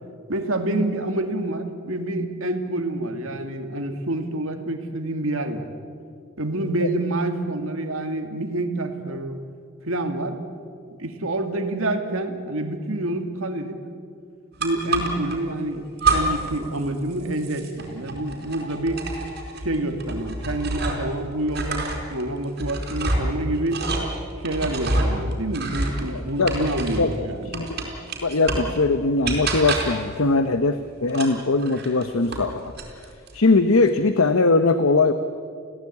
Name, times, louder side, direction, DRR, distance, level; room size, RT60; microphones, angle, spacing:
voice 1, 0.3-5.7 6.4-9.4 9.8-10.4 11.0-13.8 14.6-19.0 19.6-23.8 24.4-27.5, right 1 dB, 75° right, 6 dB, 2.3 m, -27 dB
Can opener, 14.6-15.4 16.0-16.6 16.9-21.1 21.5-27.1 27.5-28.8 29.2-30.1 31.1-32.5 32.8-33.4, right 2 dB, 45° right, 4.6 m, -27 dB
voice 2, 26.1-26.7 27.0-27.8 28.2-32.7 33.3-35.1, left 3 dB, 75° left, 9 dB, 0.9 m, -21 dB
29.0 x 16.5 x 8.5 m, 2.2 s
head